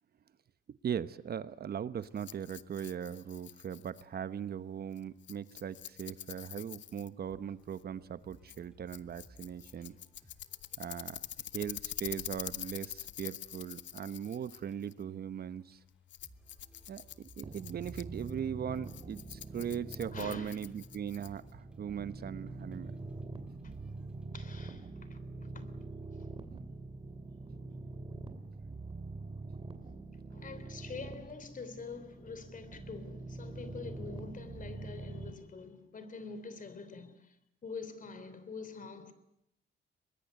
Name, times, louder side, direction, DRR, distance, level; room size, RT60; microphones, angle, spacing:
voice 1, 0.8-10.0 10.8-11.2 11.5-15.8 16.9-22.9, right 8 dB, 50° right, 1.0 m, -39 dB
Rattle, 2.0-21.6, left 12 dB, 70° left, 0.9 m, -46 dB
sound 1, 7.3-15.8 16.1-24.6, right 1 dB, 5° right, 4.3 m, -63 dB
sound 2, 17.4-35.3, right 3 dB, 25° right, 2.7 m, -45 dB
voice 2, 20.1-20.6 23.6-23.8 24.3-25.8 26.1-26.3 30.3-37.4 37.6-39.1, left 4 dB, 40° left, 3.3 m, -46 dB
23.5 x 21.0 x 9.4 m
cardioid pair, 90°, 20 cm